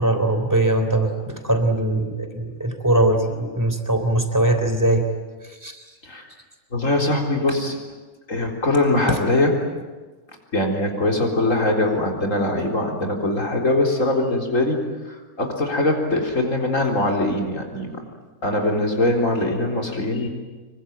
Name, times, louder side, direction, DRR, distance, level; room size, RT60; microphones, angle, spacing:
voice 1, 0.0-5.1 5.5-5.8 9.1-9.2, right 2 dB, 10° right, 6 dB, 3.4 m, -21 dB
voice 2, 6.7-7.7 8.3-9.5 10.5-18.0 18.4-20.3, left 2 dB, 65° left, 1 dB, 4.4 m, -22 dB
27.0 x 23.5 x 9.1 m, 1.3 s
omnidirectional pair, 1.5 m